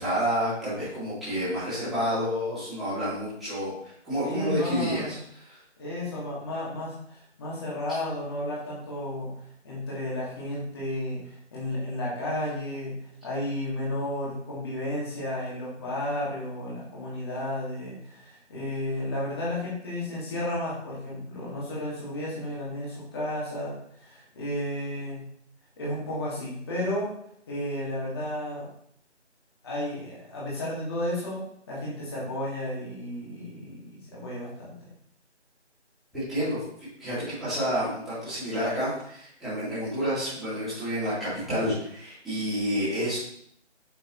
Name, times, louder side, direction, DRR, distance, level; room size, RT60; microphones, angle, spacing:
voice 1, 0.0-5.2 5.4-5.6 36.1-36.6 37.0-43.2, equal, ahead, -16 dB, 2.6 m, -29 dB
voice 2, 4.2-5.1 5.8-9.3 9.6-25.3 25.8-27.1 27.5-28.7 29.6-34.9, left 1 dB, 20° left, -6 dB, 2.2 m, -33 dB
8.2 x 6.9 x 3.1 m, 0.68 s
figure-of-eight pair, 165°, 35 cm